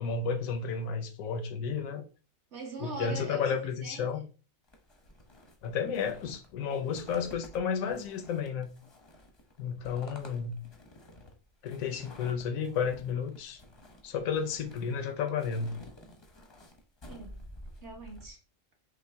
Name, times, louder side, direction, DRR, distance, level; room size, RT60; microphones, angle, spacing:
voice 1, 0.0-2.0 2.8-4.2 5.6-8.7 9.6-10.6 11.6-13.6 14.0-15.8, left 6 dB, 85° left, 1.1 m, -32 dB
voice 2, 2.5-4.1 17.1-17.4 17.8-18.4, right 3 dB, 55° right, 1.4 m, -42 dB
sound 1, 4.7-18.3, left 1 dB, 25° left, 0.6 m, -52 dB
5.7 x 2.1 x 3.3 m
omnidirectional pair, 1.4 m